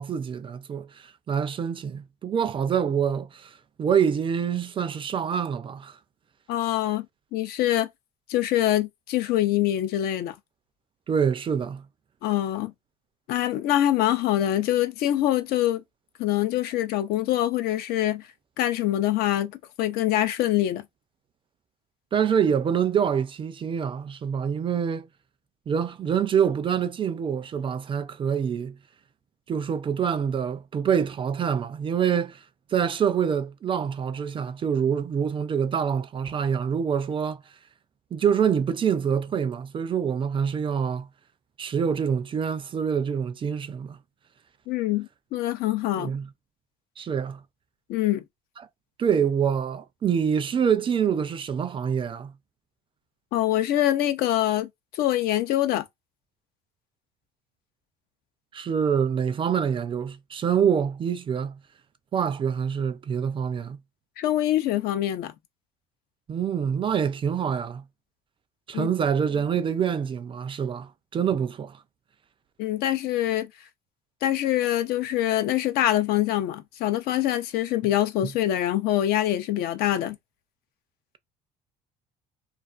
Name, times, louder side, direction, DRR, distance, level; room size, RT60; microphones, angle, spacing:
voice 1, 0.0-3.5 3.8-6.0 11.1-11.8 22.1-25.1 25.7-28.7 29.5-32.4 32.7-37.4 38.1-41.1 41.6-44.0 46.0-46.3 47.0-47.4 49.0-52.3 58.5-61.5 62.1-63.8 66.3-67.8 68.7-71.8, right 7 dB, 30° right, 0.4 m, -26 dB
voice 2, 6.5-7.1 7.3-7.9 8.3-10.3 12.2-12.7 13.3-15.8 16.2-18.3 18.6-19.5 19.8-20.8 44.7-46.1 47.9-48.2 53.3-55.9 64.2-65.3 68.7-68.9 72.6-73.5 74.2-80.2, left 13 dB, 65° left, 0.6 m, -24 dB
2.5 x 2.3 x 2.4 m
supercardioid pair, 95°, 17 cm